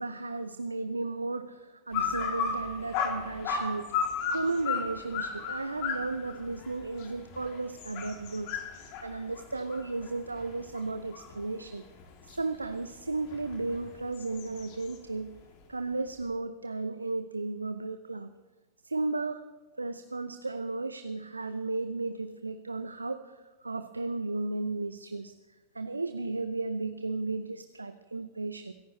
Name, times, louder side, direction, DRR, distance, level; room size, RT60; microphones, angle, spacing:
voice 1, 0.0-3.9 4.3-11.8 12.2-15.3 15.7-18.3 18.8-19.4 19.8-25.3 25.7-28.7, right 3 dB, 80° right, 10 dB, 0.6 m, -34 dB
sound 1, 1.9-11.5 12.0-15.0, left 6 dB, 45° left, 2.8 m, -34 dB
26.5 x 15.0 x 3.2 m, 1.1 s
figure-of-eight pair, 90°, 0 cm